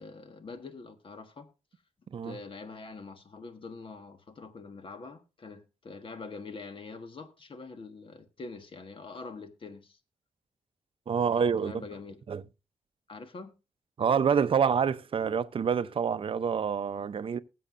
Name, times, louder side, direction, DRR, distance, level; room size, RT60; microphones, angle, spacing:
voice 1, 0.0-1.5 2.2-10.0 11.3-12.2 13.1-13.5, left 4 dB, 45° left, 1.4 m, -44 dB
voice 2, 11.1-11.7 12.3-12.4 14.0-17.4, right 7 dB, 50° right, 0.6 m, -27 dB
20.0 x 7.7 x 2.5 m
wide cardioid pair, 135°, 12 cm